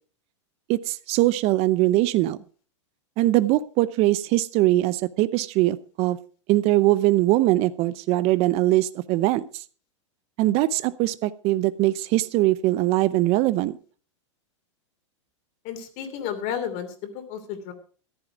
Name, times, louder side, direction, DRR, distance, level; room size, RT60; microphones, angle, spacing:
voice 1, 0.7-2.4 3.2-6.2 6.5-9.6 10.4-13.8, right 16 dB, 40° right, 17 dB, 0.7 m, -21 dB
voice 2, 15.6-17.7, left 8 dB, 45° left, 9 dB, 2.9 m, -32 dB
14.0 x 10.5 x 4.9 m, 0.40 s
hypercardioid pair, 120°, 16 cm